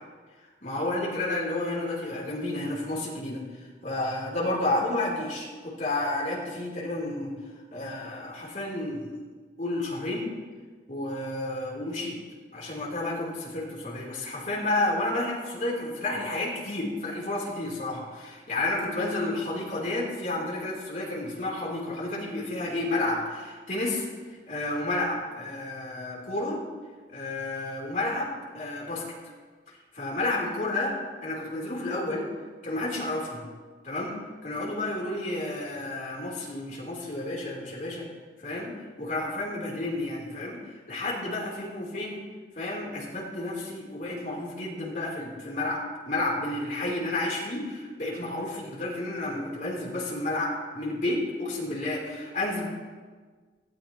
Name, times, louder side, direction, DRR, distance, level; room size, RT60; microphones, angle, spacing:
voice 1, 0.6-3.4 3.8-7.3 7.7-9.1 9.6-10.3 10.9-12.2 12.5-24.1 24.5-26.6 27.1-29.1 29.9-31.0 31.2-32.3 32.6-33.4 33.8-34.2 34.4-38.1 38.4-40.6 40.9-42.2 42.6-52.7, left 2 dB, 45° left, -3 dB, 3.5 m, -31 dB
18.0 x 13.5 x 3.0 m, 1.5 s
head